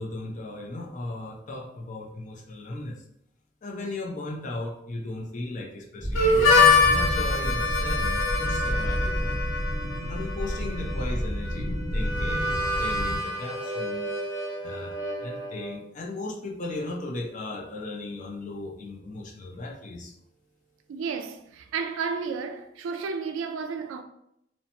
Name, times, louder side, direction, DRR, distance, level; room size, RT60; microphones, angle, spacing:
voice 1, 0.0-3.0 3.6-9.4 10.1-14.1 14.6-20.1, left 2 dB, 40° left, 0.4 m, -36 dB
sound 1, 6.0-13.2, equal, 15° left, 0.8 m, -30 dB
Harmonica, 6.1-15.8, left 3 dB, 90° left, 0.7 m, -26 dB
voice 2, 20.9-24.0, right 5 dB, 75° right, 0.3 m, -32 dB
2.8 x 2.1 x 2.7 m
head